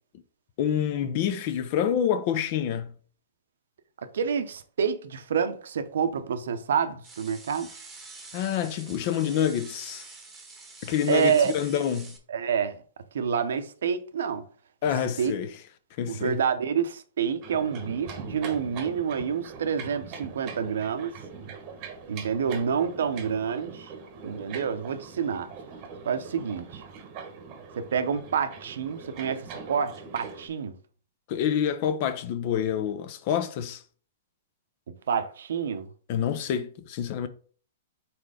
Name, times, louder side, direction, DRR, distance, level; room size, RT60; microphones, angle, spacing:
voice 1, 0.6-2.9 8.3-10.0 10.8-12.1 14.8-15.5 16.0-16.4 31.3-33.8 36.1-37.3, left 9 dB, 40° left, 0.7 m, -27 dB
voice 2, 4.1-7.7 11.1-11.5 12.3-12.8 13.1-14.5 15.2-15.3 16.1-21.1 22.1-23.9 24.2-25.5 26.0-26.8 27.8-30.7 35.1-35.9, right 7 dB, 80° right, 0.8 m, -28 dB
sound 1, 7.0-12.2, right 3 dB, 10° right, 1.2 m, -46 dB
sound 2, 17.4-30.5, right 5 dB, 35° right, 1.0 m, -42 dB
4.5 x 4.3 x 4.9 m
hypercardioid pair, 160°, 0 cm